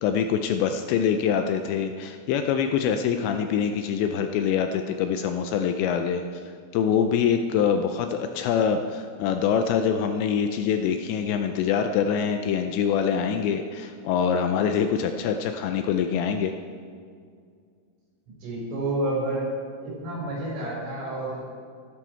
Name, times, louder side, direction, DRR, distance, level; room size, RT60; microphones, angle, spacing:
voice 1, 0.0-6.2 6.7-16.5, left 7 dB, 80° left, 6 dB, 2.6 m, -24 dB
voice 2, 18.4-19.4 19.7-21.4, right 2 dB, 90° right, -4 dB, 6.9 m, -29 dB
15.0 x 12.5 x 4.5 m, 2.1 s
omnidirectional pair, 5.6 m